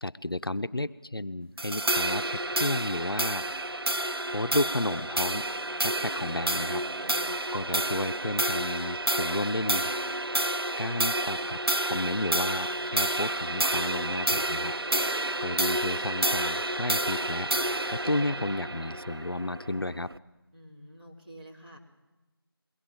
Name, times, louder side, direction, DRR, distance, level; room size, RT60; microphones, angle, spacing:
voice 1, 0.0-3.4 4.3-5.4 5.7-6.8 7.5-9.9 10.8-11.6 11.8-14.7 15.4-17.5 17.9-20.1, left 1 dB, 65° left, 11 dB, 0.7 m, -32 dB
sound 1, 1.6-20.2, right 1 dB, 70° right, 0.8 m, -29 dB
voice 2, 6.8-7.3 20.5-21.8, equal, 20° right, -6 dB, 2.9 m, -49 dB
22.5 x 18.5 x 7.6 m, 1.1 s
figure-of-eight pair, 175°, 13 cm